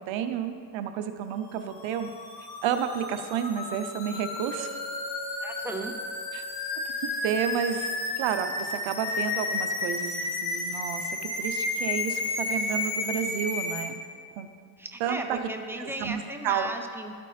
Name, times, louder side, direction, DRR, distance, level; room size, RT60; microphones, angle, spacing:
voice 1, 0.0-2.1 2.4-4.7 6.3-6.4 7.2-14.0 14.4-14.5 15.0-15.4 15.8-16.7, right 8 dB, 80° right, 8 dB, 0.7 m, -31 dB
sound 1, 1.6-13.9, left 3 dB, 90° left, 1.2 m, -32 dB
Chink clink, 4.6-8.8, right 2 dB, 45° right, 2.0 m, -45 dB
voice 2, 5.4-6.0 14.8-17.1, right 1 dB, 5° right, 4 dB, 0.6 m, -36 dB
12.5 x 4.2 x 3.3 m, 2.1 s
cardioid pair, 90°, 46 cm